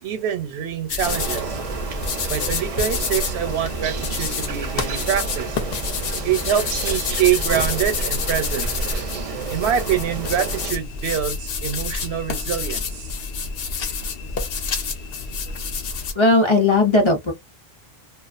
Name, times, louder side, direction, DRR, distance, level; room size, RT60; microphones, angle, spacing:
voice 1, 0.0-1.6 2.3-5.6 6.2-8.7 9.5-13.1, right 9 dB, 90° right, 0.9 m, -25 dB
sound 1, 0.9-16.1, left 4 dB, 70° left, 0.8 m, -28 dB
sound 2, 1.0-10.7, right 6 dB, 50° right, 0.4 m, -31 dB
voice 2, 16.2-17.3, left 2 dB, 35° left, 0.5 m, -17 dB
2.4 x 2.2 x 2.4 m
omnidirectional pair, 1.1 m